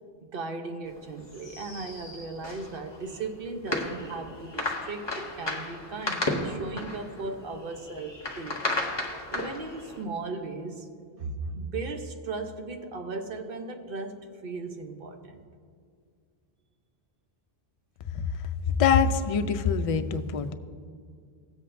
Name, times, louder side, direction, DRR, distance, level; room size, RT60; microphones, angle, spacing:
voice 1, 0.2-8.7 9.0-10.9 11.2-15.4, right 3 dB, 65° right, 6 dB, 0.9 m, -37 dB
sound 1, 0.9-10.0, left 2 dB, 25° left, 1.1 m, -34 dB
voice 2, 18.8-20.5, left 6 dB, 55° left, 9 dB, 0.4 m, -24 dB
17.0 x 7.8 x 2.5 m, 2.1 s
omnidirectional pair, 1.0 m